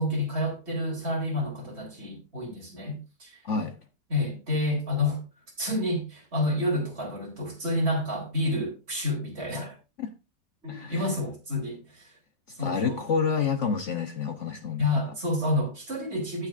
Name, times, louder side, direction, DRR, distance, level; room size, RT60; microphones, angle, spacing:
voice 1, 0.0-3.4 4.1-5.2 5.6-9.8 10.6-12.2 12.5-13.0 14.8-16.5, left 1 dB, 40° right, 3.5 m, -29 dB
voice 2, 3.4-3.7 10.0-10.1 10.7-11.1 12.6-14.9, left 5 dB, 55° left, 1.1 m, -28 dB
17.0 x 6.4 x 2.5 m
omnidirectional pair, 1.7 m